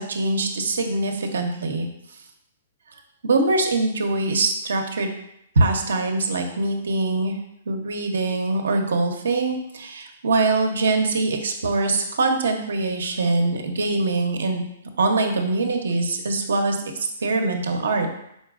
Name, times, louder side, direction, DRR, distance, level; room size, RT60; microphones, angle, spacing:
voice 1, 0.0-1.9 3.2-5.1 5.6-7.4 7.7-14.6 15.0-16.8 17.2-18.1, right 3 dB, 85° right, 4 dB, 0.6 m, -23 dB
4.1 x 4.0 x 2.4 m, 0.78 s
hypercardioid pair, 140°, 0 cm